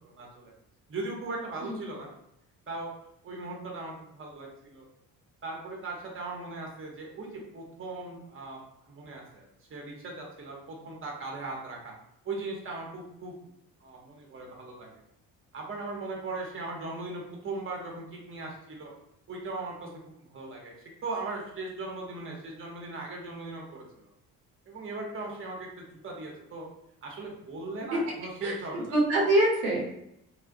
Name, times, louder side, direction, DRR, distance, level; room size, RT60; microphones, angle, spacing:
voice 1, 0.1-0.5 0.9-2.1 2.7-2.9 3.2-4.9 5.4-8.6 8.8-11.9 12.2-13.4 13.8-15.0 15.5-18.9 19.3-20.7 21.0-24.1 24.7-26.7 27.0-29.0, right 3 dB, 30° right, -1 dB, 0.8 m, -38 dB
voice 2, 28.4-29.8, right 1 dB, 85° right, -2 dB, 0.7 m, -25 dB
2.2 x 2.1 x 2.6 m, 0.77 s
hypercardioid pair, 55°, 41 cm